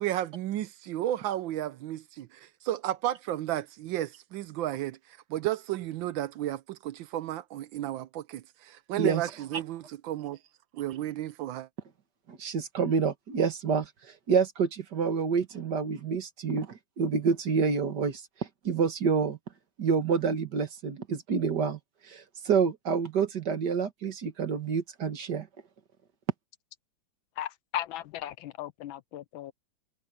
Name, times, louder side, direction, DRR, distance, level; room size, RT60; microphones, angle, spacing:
voice 1, 0.0-10.4 10.7-11.7, right 13 dB, 80° right, 1.3 m, -33 dB
voice 2, 12.3-13.9 14.3-18.2 18.6-19.4 19.8-21.8 22.1-25.5, right 6 dB, 55° right, 2.2 m, -28 dB
voice 3, 27.4-29.5, left 13 dB, 80° left, 1.5 m, -37 dB
omnidirectional pair, 2.2 m